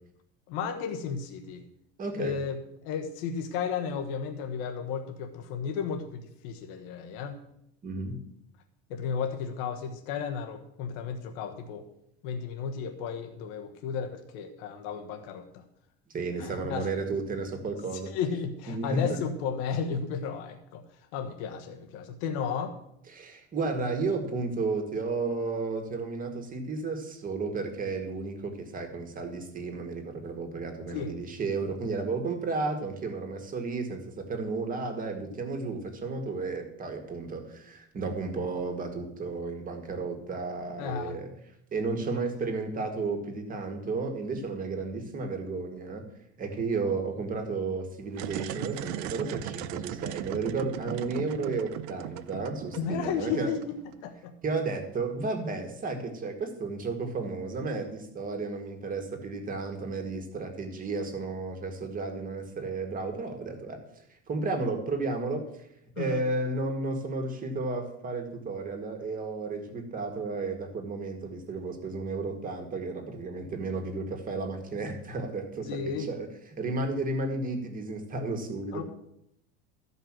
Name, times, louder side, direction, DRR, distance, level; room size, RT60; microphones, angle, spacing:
voice 1, 0.5-1.6 2.1-2.6 2.8-7.4 8.9-11.9 12.2-15.6 16.4-16.9 18.1-20.8 21.1-22.8 30.9-31.1 40.8-41.2 52.7-53.8 54.0-54.3 66.0-66.3 75.7-76.1 78.7-78.8, left 6 dB, 80° left, 5 dB, 1.3 m, -33 dB
voice 2, 2.0-2.4 7.8-8.2 16.1-18.1 18.7-19.0 23.1-41.3 41.7-46.0 46.4-53.5 54.4-63.8 64.3-65.4 66.0-76.3 76.6-78.8, right 3 dB, 25° right, 5 dB, 1.9 m, -33 dB
sound 1, 48.1-54.0, right 14 dB, 60° right, 0.6 m, -38 dB
13.5 x 5.5 x 7.4 m, 0.77 s
cardioid pair, 155°, 32 cm